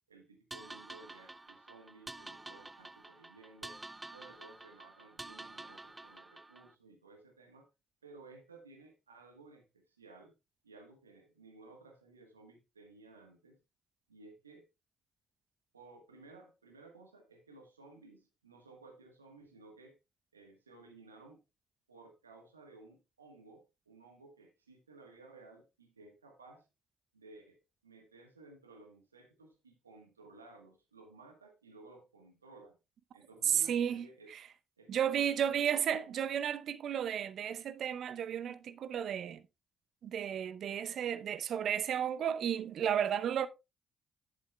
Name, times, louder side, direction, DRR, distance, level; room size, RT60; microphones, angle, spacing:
voice 1, 0.1-3.8 4.1-7.7 8.0-10.3 10.6-13.6 14.1-14.7 15.7-20.0 20.3-21.4 21.9-26.7 27.1-32.8 33.1-34.3 34.8-36.4, right 3 dB, 90° right, 1.3 m, -57 dB
sound 1, 0.5-6.7, right 2 dB, 20° right, 0.6 m, -49 dB
voice 2, 33.5-34.1 34.3-34.4 34.9-39.4 40.0-43.5, right 9 dB, 60° right, 0.7 m, -33 dB
11.0 x 9.1 x 2.3 m
figure-of-eight pair, 40°, 0 cm